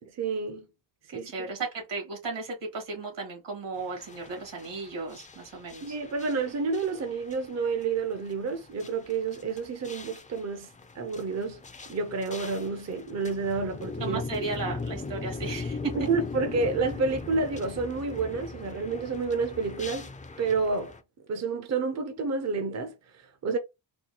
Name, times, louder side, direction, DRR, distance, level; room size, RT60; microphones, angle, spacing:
voice 1, 0.0-0.7 1.1-1.3 5.8-10.7 11.0-11.6 11.9-14.2 15.9-20.1 20.4-20.9 21.3-23.6, right 4 dB, 40° right, 0.5 m, -29 dB
voice 2, 1.1-6.0 14.0-15.9, right 3 dB, 80° right, 2.0 m, -35 dB
sound 1, 3.8-21.0, left 4 dB, 20° left, 0.3 m, -40 dB
4.2 x 2.3 x 2.8 m
wide cardioid pair, 130°, 43 cm